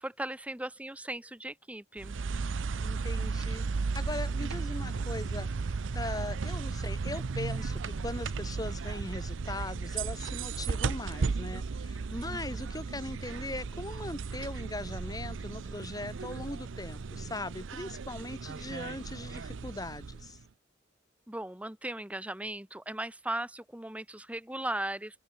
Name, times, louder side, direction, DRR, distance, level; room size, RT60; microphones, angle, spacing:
voice 1, 0.0-2.2 12.3-12.4 21.3-25.2, right 1 dB, 5° right, 1.0 m, -37 dB
sound 1, 2.0-20.4, right 4 dB, 90° right, 0.6 m, -35 dB
voice 2, 2.8-5.5 5.9-20.4, left 2 dB, 20° left, 3.1 m, -40 dB
open air
head